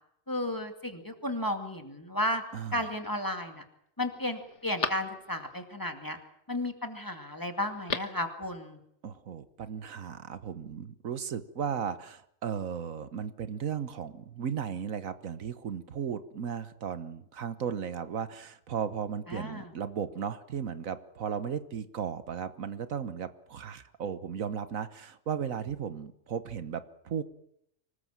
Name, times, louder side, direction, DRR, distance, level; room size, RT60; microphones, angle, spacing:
voice 1, 0.3-2.4 2.7-3.6 4.0-6.2 6.5-8.8 19.3-19.7, left 1 dB, 15° left, 5 dB, 2.4 m, -33 dB
Telephone, 2.5-3.1 3.6-3.7 4.1-5.6 7.6-8.3 8.6-8.7, left 5 dB, 60° left, 1.7 m, -38 dB
voice 2, 2.5-2.8 9.0-27.2, right 7 dB, 85° right, 12 dB, 1.6 m, -35 dB
25.0 x 19.5 x 7.5 m, 0.76 s
omnidirectional pair, 1.4 m